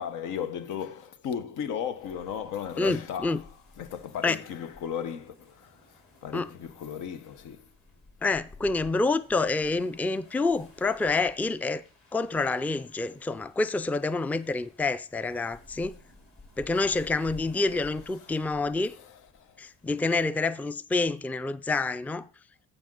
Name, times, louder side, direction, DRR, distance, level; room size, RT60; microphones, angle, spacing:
voice 1, 0.0-3.5 3.8-7.7 18.9-19.6, left 8 dB, 85° left, 0.9 m, -36 dB
sound 1, 1.9-20.1, left 3 dB, 45° left, 3.6 m, -54 dB
voice 2, 2.8-3.4 4.2-4.4 6.3-6.5 8.2-11.8 12.1-16.0 16.6-18.9 19.6-22.3, left 3 dB, 5° left, 0.3 m, -27 dB
15.0 x 5.1 x 3.8 m
cardioid pair, 90°, 30 cm